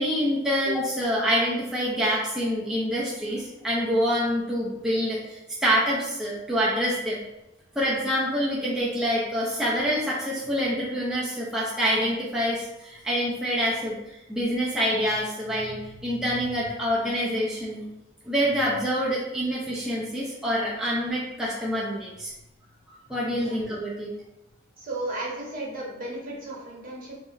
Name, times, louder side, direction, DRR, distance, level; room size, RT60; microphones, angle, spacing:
voice 1, 0.0-7.2 7.8-17.8 18.2-22.3 23.1-24.1, equal, 5° right, -7 dB, 0.4 m, -26 dB
voice 2, 24.8-27.2, right 2 dB, 45° right, -4 dB, 0.8 m, -34 dB
2.5 x 2.0 x 3.7 m, 0.95 s
head